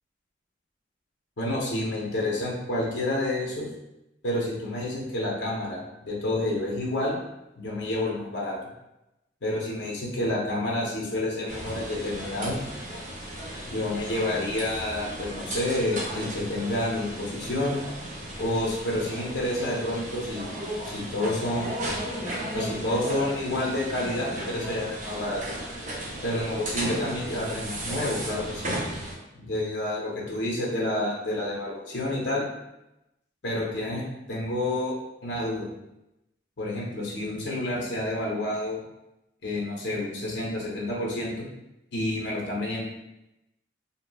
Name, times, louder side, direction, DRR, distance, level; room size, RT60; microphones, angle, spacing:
voice 1, 1.4-3.7 4.2-7.2 7.6-8.6 9.4-12.6 13.6-17.8 18.4-20.5 20.9-21.7 22.5-25.4 26.2-28.7 29.3-32.4 33.4-34.0 34.3-34.9 35.2-35.7 36.6-38.8 39.4-41.4 41.9-42.9, left 1 dB, 60° left, -4 dB, 0.7 m, -29 dB
sound 1, 11.5-29.1, right 1 dB, 40° right, 0.6 m, -35 dB
2.9 x 2.5 x 2.2 m, 0.91 s
head